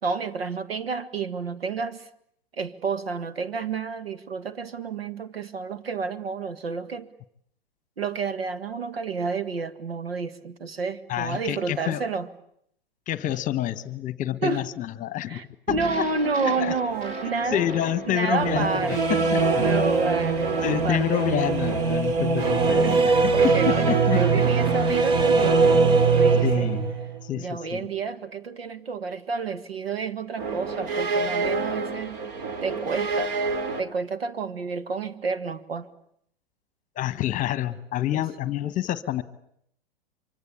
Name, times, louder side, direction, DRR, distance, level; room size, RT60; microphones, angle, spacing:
voice 1, 0.0-2.1 2.6-7.1 8.0-12.3 14.4-14.7 15.3-17.7 18.1-19.2 19.6-21.2 22.7-26.7 27.4-32.2 32.6-33.3 33.8-35.9 38.1-38.2, right 4 dB, 80° right, 11 dB, 1.8 m, -30 dB
voice 2, 11.1-12.0 13.1-15.4 15.7-16.7 17.5-19.6 20.6-24.5 26.4-26.9 27.2-27.8 36.9-39.2, left 12 dB, 25° left, 15 dB, 1.3 m, -28 dB
sound 1, 15.7-20.0, right 3 dB, 25° right, 2.3 m, -40 dB
sound 2, 16.2-27.2 30.4-33.8, right 4 dB, 45° right, 2.6 m, -23 dB
24.5 x 24.0 x 8.5 m, 0.70 s
hypercardioid pair, 115°, 30 cm